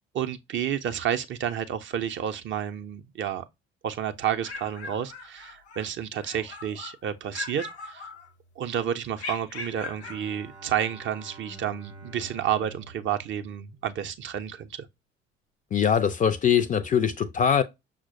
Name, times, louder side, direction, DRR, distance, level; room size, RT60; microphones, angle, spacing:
voice 1, 0.1-3.4 3.8-8.1 8.6-14.8, right 9 dB, 35° right, 0.5 m, -30 dB
sound 1, 4.2-5.9 6.2-7.0 7.3-8.6 9.2-10.3, left 3 dB, 90° left, 0.5 m, -40 dB
Bowed string instrument, 10.0-14.4, right 2 dB, 90° right, 0.6 m, -48 dB
voice 2, 15.7-17.6, left 8 dB, 25° left, 0.4 m, -22 dB
5.9 x 2.0 x 2.6 m
figure-of-eight pair, 50°, 32 cm